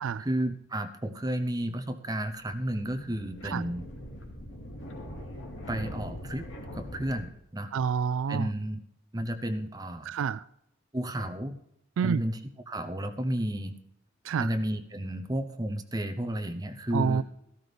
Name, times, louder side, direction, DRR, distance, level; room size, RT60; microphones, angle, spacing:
voice 1, 0.0-3.8 5.7-6.5 6.7-7.7 8.3-8.8 9.1-10.1 10.9-11.6 12.0-12.4 12.7-13.7 14.4-17.2, right 1 dB, 20° right, 0.8 m, -32 dB
sound 1, 2.6-7.2, equal, 75° left, 2.5 m, -42 dB
voice 2, 7.7-8.5 10.1-10.4 12.0-12.2 14.2-14.5 16.9-17.2, right 6 dB, 85° right, 0.3 m, -28 dB
14.0 x 13.0 x 3.4 m
head